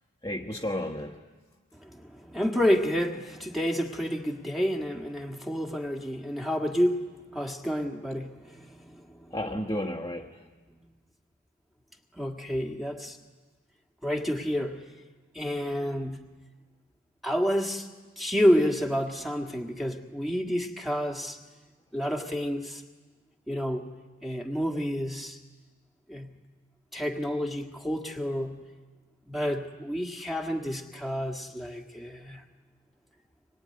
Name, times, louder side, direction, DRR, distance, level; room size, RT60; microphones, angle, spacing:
voice 1, 0.2-1.2 9.3-10.4, left 1 dB, 15° left, 0 dB, 1.4 m, -32 dB
voice 2, 1.7-7.0 7.3-9.3 12.1-13.2 14.0-14.9 15.3-16.4 17.2-17.9 18.2-21.4 21.9-22.8 23.5-23.9 24.2-25.4 26.1-26.4 26.9-28.7 29.3-32.5, equal, ahead, 2 dB, 1.8 m, -29 dB
25.0 x 22.5 x 9.8 m, 1.3 s
head